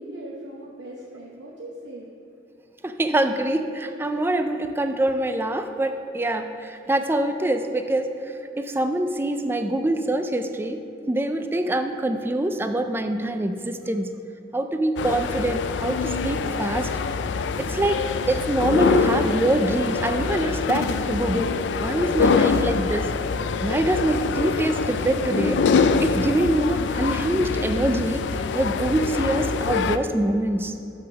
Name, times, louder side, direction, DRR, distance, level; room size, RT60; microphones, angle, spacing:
voice 1, 0.0-2.1, right 1 dB, 80° right, -3 dB, 0.9 m, -39 dB
voice 2, 2.8-14.2 14.5-16.9 17.6-23.1 23.6-25.7 26.0-28.2 28.5-30.8, right 1 dB, 15° right, 8 dB, 0.3 m, -24 dB
sound 1, 15.0-30.0, left 5 dB, 85° left, 0.4 m, -24 dB
7.0 x 6.3 x 5.8 m, 2.9 s
head